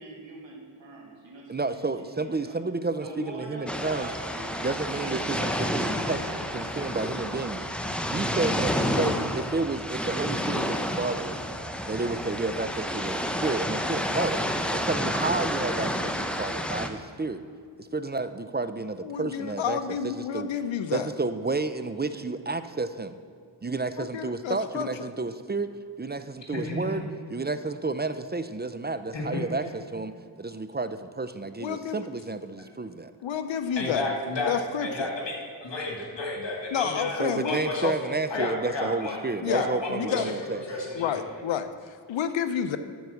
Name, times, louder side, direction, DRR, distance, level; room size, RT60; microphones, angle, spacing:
voice 1, 0.0-2.6 2.9-4.5 4.9-5.8 6.2-6.9 22.1-22.2, right 2 dB, 80° right, -2 dB, 2.0 m, -43 dB
voice 2, 1.5-4.1 4.6-6.2 6.5-7.7 8.1-11.4 11.8-17.4 17.8-20.5 20.9-23.2 23.6-27.1 27.3-30.1 30.4-33.1 37.2-40.6, right 3 dB, 25° right, 11 dB, 0.4 m, -31 dB
sound 1, 3.7-16.9, equal, ahead, 0.8 m, -30 dB
voice 3, 19.0-21.1 24.0-25.1 31.6-32.0 33.2-34.1 34.5-35.1 36.7-37.9 38.3-38.5 39.4-40.4 40.9-42.8, left 8 dB, 90° left, 10 dB, 0.6 m, -30 dB
voice 4, 26.5-27.1 29.1-29.4 33.8-39.2 39.5-41.3, left 2 dB, 75° left, -1 dB, 2.2 m, -32 dB
12.0 x 4.7 x 6.9 m, 2.1 s
cardioid pair, 55°, 44 cm